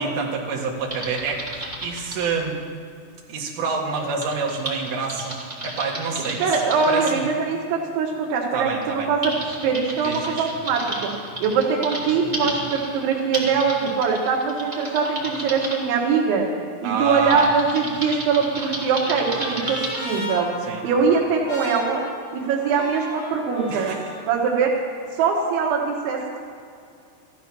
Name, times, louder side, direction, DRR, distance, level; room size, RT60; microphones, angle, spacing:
voice 1, 0.0-2.6 3.3-6.5 6.9-7.2 8.5-9.1 10.0-10.5 16.8-17.5 20.7-20.8 23.7-24.0, right 4 dB, 65° right, -1 dB, 3.6 m, -27 dB
Typing, 0.9-2.3 4.2-7.2 8.2-8.3 8.8-15.8 17.3-20.1, right 1 dB, 15° right, 1.6 m, -32 dB
voice 2, 6.4-9.3 9.6-11.1 11.4-16.5 16.8-20.5 20.8-22.0 22.3-23.9 24.3-24.7 25.2-26.2, right 5 dB, 90° right, -3 dB, 3.8 m, -22 dB
Trumpet, 18.4-24.3, left 1 dB, 50° left, 4.6 m, -36 dB
14.5 x 13.0 x 6.0 m, 2.4 s
omnidirectional pair, 5.2 m